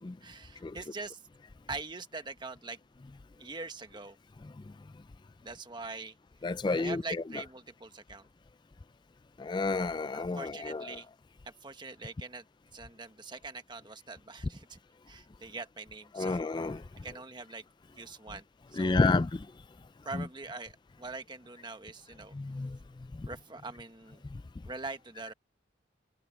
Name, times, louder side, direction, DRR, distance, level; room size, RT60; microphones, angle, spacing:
voice 1, 0.2-1.2 1.7-2.8 3.4-4.2 5.4-6.2 6.8-8.3 10.1-11.1 11.4-12.5 12.7-14.8 15.1-17.6 17.9-18.4 18.7-19.2 20.0-22.3 23.2-24.2 24.6-25.3, right 3 dB, 25° right, 1.4 m, -43 dB
voice 2, 6.4-7.0 9.4-11.0 16.1-16.8 18.8-19.4 20.1-20.2 22.3-22.8 23.2-23.3, left 3 dB, 25° left, 0.3 m, -30 dB
head